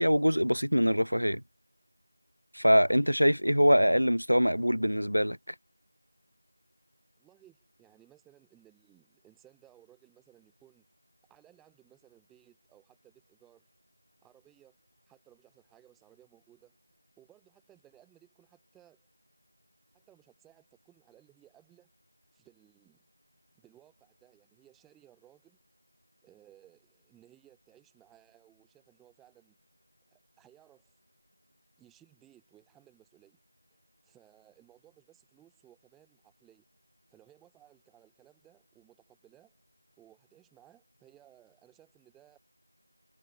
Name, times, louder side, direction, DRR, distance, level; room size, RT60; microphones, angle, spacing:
voice 1, 0.0-1.4 2.5-5.4, equal, 90° right, 0.4 m, -24 dB
voice 2, 7.2-10.9 11.3-13.7 14.2-14.8 15.1-16.8 17.2-19.1 19.9-21.9 22.3-23.0 23.5-25.6 26.2-29.6 30.1-31.0 31.8-33.4 34.0-36.6 37.1-39.6 40.0-42.4, right 13 dB, ahead, 0.9 m, -61 dB
figure-of-eight pair, 175°, 0 cm